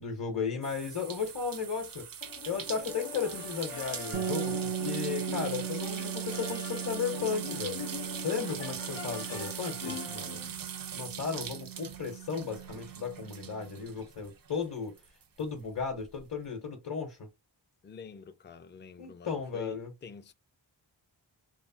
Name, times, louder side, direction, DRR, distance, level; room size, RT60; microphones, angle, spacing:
voice 1, 0.0-2.1 2.5-7.8 8.2-10.5 10.9-14.9 15.4-17.3 19.0-19.9, left 5 dB, 50° left, 0.8 m, -35 dB
sound 1, 0.6-14.7 15.0-16.2, right 8 dB, 50° right, 0.4 m, -42 dB
sound 2, 2.2-10.5, left 7 dB, 80° left, 0.7 m, -43 dB
sound 3, 4.1-13.9, right 10 dB, 85° right, 0.8 m, -39 dB
voice 2, 17.8-20.3, left 6 dB, 25° left, 0.4 m, -47 dB
3.1 x 2.0 x 2.6 m
wide cardioid pair, 55°, 46 cm